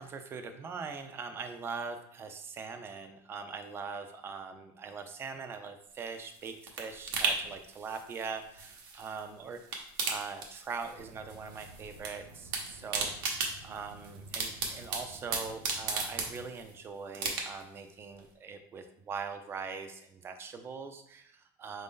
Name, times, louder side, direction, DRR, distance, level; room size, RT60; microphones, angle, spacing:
voice 1, 0.0-21.8, right 5 dB, 20° right, 7 dB, 0.4 m, -42 dB
sound 1, 5.9-9.2 9.5-11.0 11.3-12.1 12.4-16.7 17.1-17.8 18.2-18.3, right 4 dB, 85° right, 0.9 m, -35 dB
sound 2, 10.9-16.4, right 1 dB, 50° right, 0.7 m, -53 dB
4.2 x 2.6 x 3.6 m, 0.70 s
supercardioid pair, 150°, 11 cm